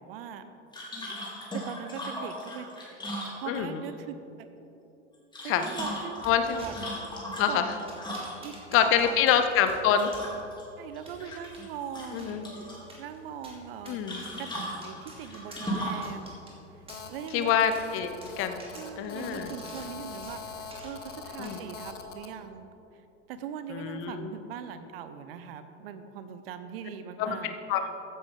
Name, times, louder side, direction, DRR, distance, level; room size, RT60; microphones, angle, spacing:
voice 1, 0.1-0.4 1.5-3.0 3.4-4.2 5.4-6.7 7.5-7.7 8.4-8.5 8.8-9.2 10.8-12.4 13.0-14.0 14.4-16.3 17.1-17.5 18.7-22.7 23.3-27.5, right 8 dB, 50° right, 10 dB, 0.8 m, -40 dB
sound 1, 0.7-3.9 5.1-8.6 9.9-10.6 11.0-11.7 11.9-12.8 14.1-16.1, equal, 10° left, 3.0 m, -37 dB
voice 2, 3.5-3.8 5.4-5.7 6.2-6.6 7.4-7.7 8.7-10.1 12.1-12.4 13.9-14.2 17.3-18.6 19.0-19.6 21.4-21.6 23.7-24.3 27.2-27.9, left 8 dB, 35° left, 8 dB, 0.8 m, -26 dB
sound 2, 6.1-21.9, right 1 dB, 15° right, 2.7 m, -50 dB
Telephone, 16.9-22.3, left 5 dB, 75° left, 1.2 m, -43 dB
14.5 x 10.0 x 3.8 m, 2.9 s
figure-of-eight pair, 80°, 37 cm